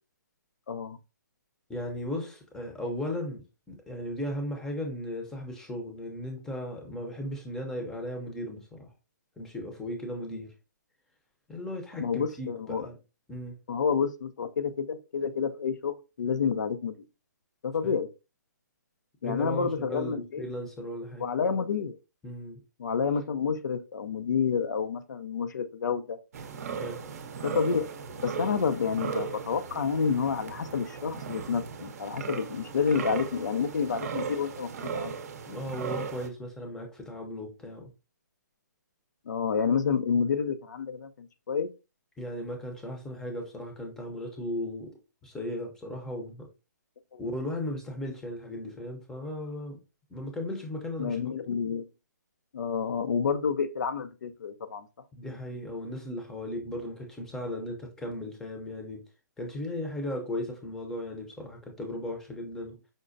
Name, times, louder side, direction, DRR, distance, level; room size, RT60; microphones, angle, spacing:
voice 1, 0.7-1.0 12.0-12.9 13.7-16.9 17.6-18.1 19.2-20.4 21.2-22.0 22.8-26.2 27.4-27.9 28.2-35.1 39.3-41.7 47.1-47.2 51.0-51.9 52.5-54.9, left 6 dB, 75° left, 0.5 m, -29 dB
voice 2, 1.7-8.9 9.4-10.5 11.5-13.0 13.3-13.6 17.8-17.9 19.2-21.3 22.2-22.6 26.8-27.0 35.5-37.9 42.2-45.0 45.2-46.5 47.2-49.8 50.1-51.3 55.1-59.0 59.4-62.8, left 1 dB, 5° left, 0.6 m, -36 dB
sound 1, 26.3-36.3, right 6 dB, 55° right, 0.6 m, -37 dB
5.1 x 2.1 x 2.5 m
hypercardioid pair, 150°, 10 cm